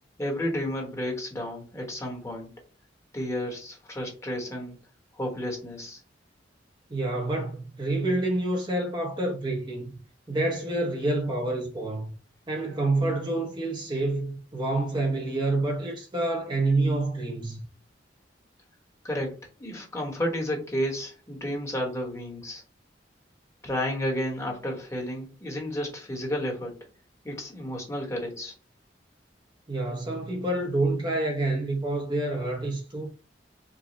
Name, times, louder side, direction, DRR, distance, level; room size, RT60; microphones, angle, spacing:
voice 1, 0.2-2.5 3.1-4.8 5.1-6.0 19.0-22.6 23.6-26.8 27.2-28.5, equal, 15° left, 1.1 m, -32 dB
voice 2, 6.9-9.9 10.3-12.1 12.5-17.6 29.7-33.1, right 2 dB, 25° right, 0.7 m, -28 dB
4.8 x 2.2 x 4.1 m
head